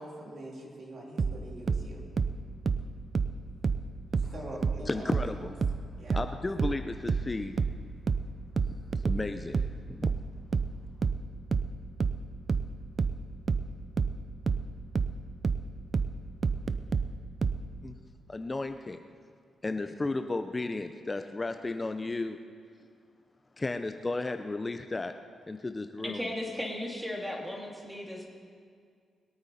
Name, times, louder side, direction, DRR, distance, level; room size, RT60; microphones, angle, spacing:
voice 1, 0.0-2.1 4.2-5.5 6.0-6.2, right 1 dB, 65° right, -1 dB, 2.9 m, -43 dB
sound 1, 1.2-4.4 4.6-17.7, right 5 dB, 45° right, 0.5 m, -29 dB
voice 2, 4.9-5.5 6.1-7.6 8.6-9.6 9.9-10.1 17.8-18.0 18.3-19.0 19.6-22.4 23.6-25.1 25.5-26.3, left 2 dB, 25° left, 7 dB, 0.6 m, -34 dB
voice 3, 26.0-28.3, left 1 dB, 5° right, -1 dB, 2.8 m, -36 dB
21.5 x 8.9 x 4.2 m, 2.2 s
cardioid pair, 70°, 0 cm